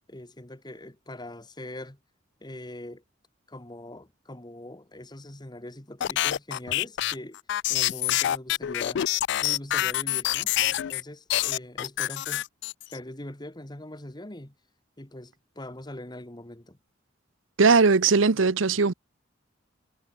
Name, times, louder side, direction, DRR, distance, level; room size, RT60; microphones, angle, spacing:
voice 1, 0.1-2.0 2.4-3.0 3.5-7.4 7.7-9.1 9.4-10.5 10.9-12.4 12.9-14.5 15.0-16.8, left 1 dB, 20° left, 1.8 m, -42 dB
sound 1, 6.0-11.0 11.3-13.0, left 13 dB, 60° left, 0.3 m, -26 dB
voice 2, 17.6-18.9, right 4 dB, 80° right, 0.8 m, -19 dB
head